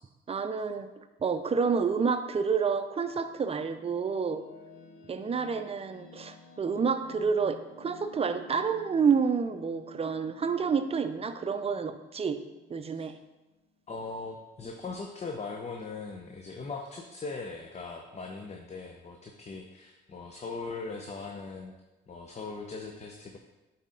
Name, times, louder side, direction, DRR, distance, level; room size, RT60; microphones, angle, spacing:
voice 1, 0.3-0.9 1.2-4.4 5.1-12.4 12.7-13.1, right 5 dB, 30° right, 9 dB, 0.5 m, -29 dB
sound 1, 2.8-14.1, left 4 dB, 90° left, 1.0 m, -54 dB
voice 2, 13.9-21.7 22.1-23.4, left 4 dB, 35° left, 2 dB, 0.7 m, -40 dB
8.0 x 4.2 x 3.8 m, 1.0 s
cardioid pair, 90°, 20 cm